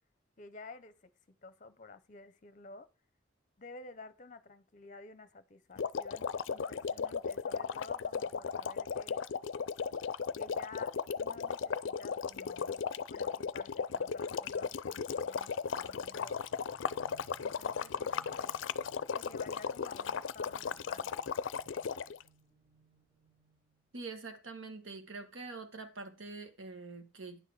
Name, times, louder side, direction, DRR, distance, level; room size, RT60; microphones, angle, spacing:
voice 1, 0.4-2.9 3.6-9.2 10.3-12.8 13.1-16.4 17.4-18.6 19.1-21.1, left 3 dB, 40° left, 0.7 m, -52 dB
sound 1, 5.8-22.2, left 6 dB, 75° left, 0.4 m, -36 dB
sound 2, 16.1-23.9, right 3 dB, 30° right, 1.8 m, -64 dB
voice 2, 23.9-27.4, right 3 dB, 85° right, 1.5 m, -45 dB
10.5 x 6.2 x 4.8 m
head